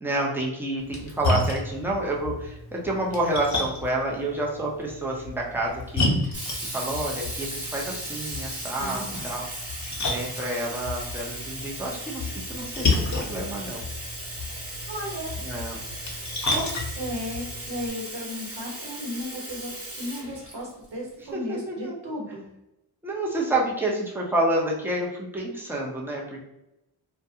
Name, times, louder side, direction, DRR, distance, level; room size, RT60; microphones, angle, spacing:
voice 1, 0.0-6.3 6.6-9.4 10.0-13.8 15.4-15.8 21.3-22.0 23.0-26.4, right 1 dB, 5° right, -3 dB, 0.7 m, -29 dB
Splash splatter, 0.8-17.9, left 2 dB, 40° left, 0.8 m, -32 dB
Sink (filling or washing), 6.3-21.1, right 1 dB, 30° right, 1.3 m, -37 dB
voice 2, 8.8-9.3 14.9-15.4 16.5-22.4, left 1 dB, 70° right, -2 dB, 1.1 m, -35 dB
2.3 x 2.2 x 2.7 m, 0.90 s
cardioid pair, 50°, 44 cm